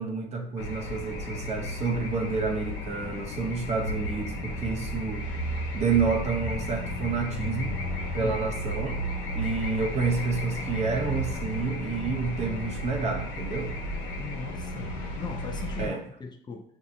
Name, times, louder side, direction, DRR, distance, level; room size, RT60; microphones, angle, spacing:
voice 1, 0.0-5.3 5.7-7.8 8.1-9.0 9.3-13.7 15.8-16.0, right 4 dB, 35° right, 3 dB, 0.7 m, -29 dB
sound 1, 0.6-15.9, equal, 90° left, 1.0 m, -33 dB
voice 2, 14.2-16.6, left 4 dB, 25° left, 3 dB, 0.4 m, -39 dB
5.8 x 2.8 x 2.5 m, 0.67 s
cardioid pair, 115°, 18 cm